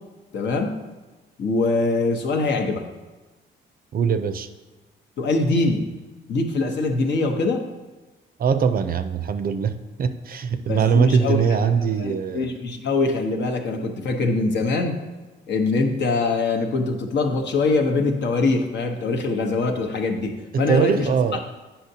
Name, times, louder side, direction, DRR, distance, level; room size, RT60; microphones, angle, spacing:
voice 1, 0.3-0.8 1.4-2.8 5.2-5.9 6.3-7.6 10.7-11.4 12.0-15.0 15.5-21.1, left 3 dB, 65° left, 4 dB, 0.9 m, -23 dB
voice 2, 3.9-4.5 8.4-12.5 20.5-21.4, right 6 dB, 50° right, 10 dB, 0.5 m, -22 dB
8.8 x 5.6 x 2.8 m, 1.2 s
cardioid pair, 90°, 20 cm